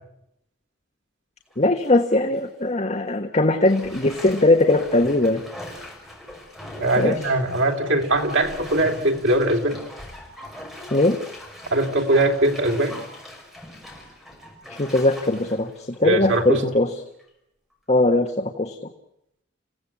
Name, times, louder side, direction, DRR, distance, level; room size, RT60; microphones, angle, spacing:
Bathtub (filling or washing), 1.5-1.9 2.3-2.5 3.7-16.8 17.2-17.3, left 1 dB, ahead, 5.8 m, -41 dB
voice 1, 1.6-5.4 7.0-7.1 10.9-11.2 14.8-16.9 17.9-18.7, left 2 dB, 35° left, 5 dB, 1.4 m, -20 dB
voice 2, 6.8-9.8 11.7-13.0 16.0-16.6, right 1 dB, 85° right, 3 dB, 3.3 m, -21 dB
28.5 x 17.0 x 8.7 m, 0.80 s
head